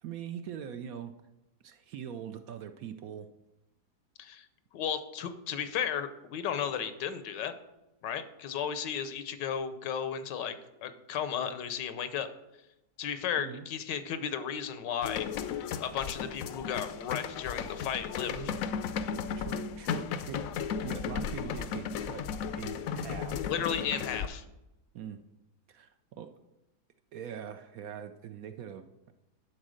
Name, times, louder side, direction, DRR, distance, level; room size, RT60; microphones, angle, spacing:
voice 1, 0.0-1.1 1.6-3.3 13.4-13.7 18.2-18.6 19.4-22.3 22.6-23.5 24.9-25.2 25.7-26.3 27.1-29.1, right 8 dB, 70° right, 9 dB, 0.9 m, -42 dB
voice 2, 4.7-7.5 8.0-10.5 10.8-12.3 13.0-15.3 15.8-18.3 23.4-24.4, left 8 dB, 85° left, 11 dB, 1.4 m, -34 dB
sound 1, 15.0-24.3, left 7 dB, 70° left, 0.8 m, -35 dB
11.0 x 4.3 x 6.4 m, 0.94 s
omnidirectional pair, 1.8 m